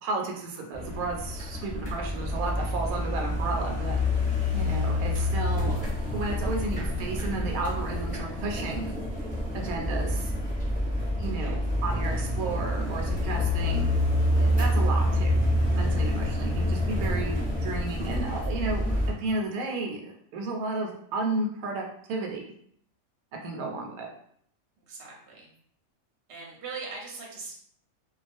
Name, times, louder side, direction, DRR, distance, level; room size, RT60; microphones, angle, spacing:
voice 1, 0.0-4.0 4.5-8.9 9.5-10.3 11.2-13.9 14.4-15.4 15.7-17.4 17.6-22.5 23.4-24.1, right 3 dB, 80° right, 1 dB, 1.0 m, -33 dB
sound 1, 0.7-19.1, left 1 dB, 10° left, 0.7 m, -27 dB
voice 2, 24.8-25.5 26.3-27.5, right 4 dB, 60° right, -2 dB, 0.8 m, -40 dB
2.3 x 2.2 x 2.5 m, 0.65 s
omnidirectional pair, 1.5 m